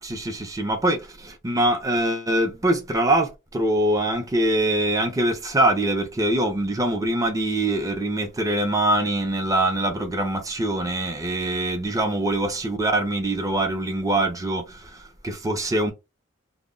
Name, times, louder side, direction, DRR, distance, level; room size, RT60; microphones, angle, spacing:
voice 1, 0.0-15.9, right 1 dB, 15° right, 0.5 m, -23 dB
2.1 x 2.0 x 3.6 m
head